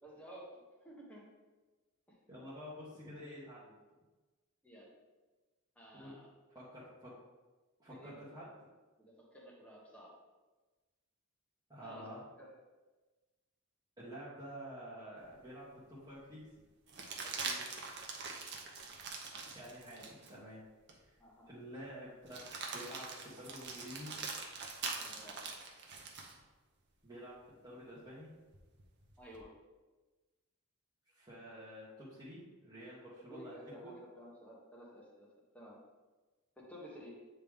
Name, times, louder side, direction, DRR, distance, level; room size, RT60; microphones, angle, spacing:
voice 1, 0.0-1.3 2.1-2.2 4.6-4.9 5.8-6.3 7.9-8.3 9.0-10.1 11.8-12.1 12.4-12.5 17.2-17.7 21.2-21.5 25.0-25.4 29.2-29.6 33.2-35.3 35.5-35.8 36.6-37.3, equal, 5° left, -4 dB, 1.3 m, -53 dB
voice 2, 2.3-3.7 5.9-6.1 6.5-7.1 7.8-8.5 11.7-12.2 14.0-16.5 19.5-20.6 20.9-21.1 21.5-24.1 27.0-27.4 27.6-28.3 31.1-33.5 33.8-33.9, equal, 20° right, -10 dB, 1.2 m, -49 dB
sound 1, 15.3-15.4 16.9-20.3 20.9-21.0 22.3-26.4 28.5-29.4, right 4 dB, 55° right, 0.9 m, -43 dB
8.6 x 3.3 x 3.6 m, 1.2 s
head